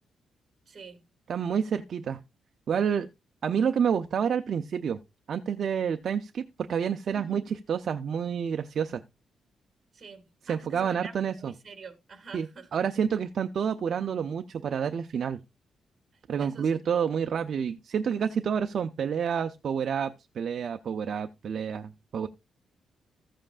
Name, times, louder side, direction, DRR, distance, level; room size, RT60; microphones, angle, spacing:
voice 1, 0.7-1.0 7.1-7.5 9.9-12.7 16.4-16.8, right 5 dB, 30° right, 2.0 m, -46 dB
voice 2, 1.3-2.2 2.7-3.1 3.4-5.0 5.3-9.0 10.5-11.5 12.3-15.4 16.3-22.3, right 7 dB, 50° right, 0.5 m, -29 dB
14.5 x 7.6 x 2.5 m
wide cardioid pair, 165°, 0 cm